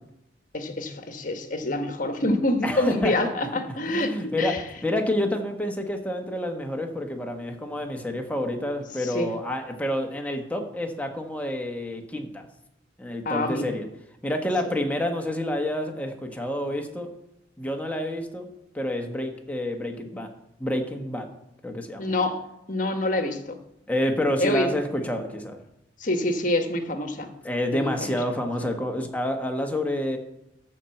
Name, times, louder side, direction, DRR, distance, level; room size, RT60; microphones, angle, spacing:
voice 1, 0.5-4.6 9.1-9.3 13.2-13.7 22.0-22.4 22.7-23.6 24.4-24.8 26.0-27.3 27.7-27.9, left 2 dB, 50° left, 7 dB, 1.3 m, -26 dB
voice 2, 2.6-3.1 3.8-12.4 13.0-13.9 14.2-17.1 17.6-18.5 18.7-20.3 20.6-21.3 21.6-22.1 23.9-25.6 27.4-30.2, left 1 dB, 10° left, 3 dB, 1.2 m, -28 dB
12.5 x 4.4 x 7.7 m, 0.86 s
head